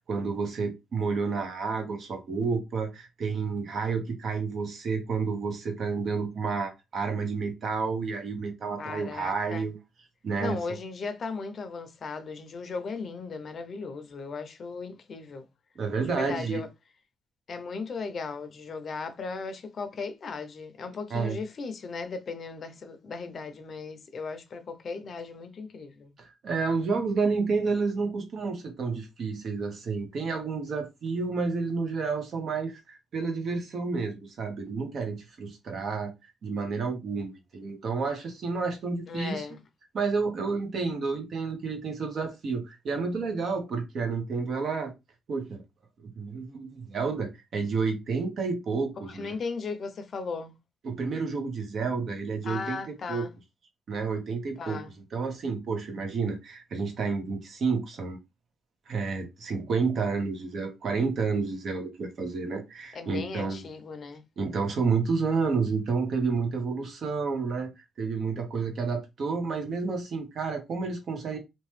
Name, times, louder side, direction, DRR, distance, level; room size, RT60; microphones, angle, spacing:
voice 1, 0.0-9.8 10.2-10.8 15.8-16.6 21.1-21.4 26.2-36.1 36.4-39.5 39.9-44.9 45.3-45.6 46.0-49.3 50.8-53.2 53.9-54.8 55.1-58.2 58.9-63.6 64.4-71.4, right 4 dB, 55° right, 0.9 m, -30 dB
voice 2, 8.8-9.7 10.4-15.5 16.0-16.7 17.5-26.1 39.1-39.6 49.0-50.5 52.4-53.4 54.6-54.9 62.9-64.2, left 4 dB, 50° left, 0.6 m, -37 dB
2.8 x 2.2 x 3.2 m
cardioid pair, 90°, 0 cm